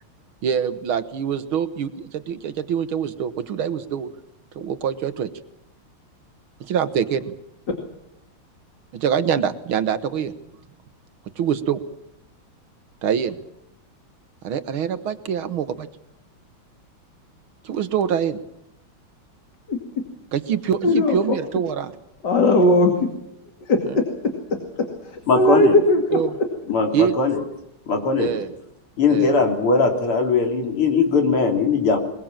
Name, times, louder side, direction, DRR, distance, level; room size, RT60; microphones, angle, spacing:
voice 1, 0.4-4.1 4.6-5.3 6.7-7.3 8.9-10.3 11.4-11.8 13.0-13.4 14.4-15.9 17.6-18.4 20.3-21.9 23.9-24.0 26.1-26.3 26.9-27.2 28.2-28.5 29.1-29.3, right 8 dB, 75° right, 12 dB, 1.9 m, -24 dB
voice 2, 20.8-21.4 22.2-23.1 23.7-24.0 25.1-26.2, left 1 dB, 55° left, 4 dB, 2.9 m, -18 dB
voice 3, 25.3-25.7 26.7-27.4 27.9-28.3 29.0-32.0, left 4 dB, 85° left, 3 dB, 4.2 m, -19 dB
22.0 x 22.0 x 7.4 m, 0.82 s
omnidirectional pair, 2.3 m